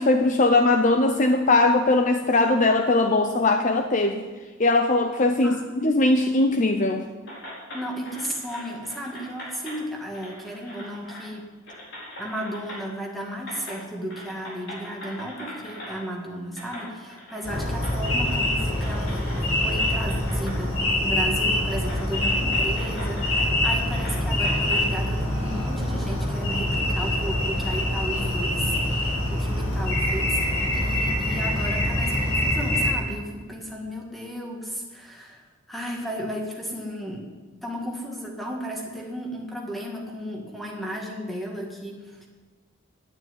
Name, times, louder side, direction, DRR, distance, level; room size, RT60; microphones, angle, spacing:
voice 1, 0.0-4.2 4.6-7.0, left 2 dB, 35° left, 6 dB, 0.6 m, -20 dB
voice 2, 5.4-5.7 7.7-11.5 12.2-19.2 19.6-37.3 37.6-42.3, equal, ahead, -1 dB, 1.9 m, -34 dB
sound 1, 7.3-9.8 10.1-11.4 11.7-13.1 13.4-13.8 14.1-16.0 16.6-20.6 21.0-21.1 21.7-24.8, left 1 dB, 55° left, 4.6 m, -41 dB
sound 2, 17.4-32.9, left 1 dB, 85° left, 5.4 m, -25 dB
9.8 x 9.6 x 9.6 m, 1.3 s
head